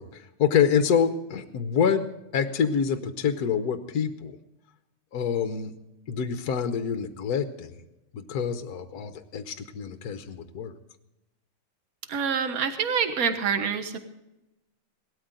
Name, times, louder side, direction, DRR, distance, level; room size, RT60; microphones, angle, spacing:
voice 1, 0.0-4.4 5.1-5.7 6.1-7.8 8.1-10.8, left 7 dB, 55° left, 8 dB, 1.2 m, -26 dB
voice 2, 12.1-14.0, right 6 dB, 45° right, 8 dB, 1.5 m, -26 dB
18.0 x 13.0 x 3.8 m, 0.93 s
omnidirectional pair, 2.3 m